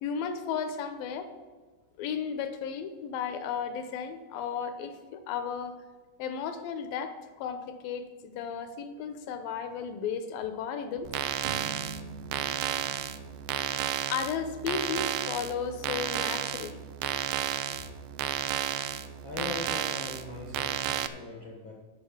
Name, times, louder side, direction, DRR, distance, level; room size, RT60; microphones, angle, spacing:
voice 1, 0.0-1.3 2.0-5.8 6.2-11.1 14.1-16.8, left 7 dB, 75° left, 9 dB, 2.5 m, -34 dB
sound 1, 11.0-21.1, right 11 dB, 85° right, 1.9 m, -32 dB
Bass guitar, 11.4-14.5, right 4 dB, 65° right, 1.8 m, -45 dB
voice 2, 19.2-21.7, left 3 dB, 60° left, -1 dB, 1.2 m, -40 dB
10.5 x 6.2 x 7.1 m, 1.4 s
omnidirectional pair, 4.3 m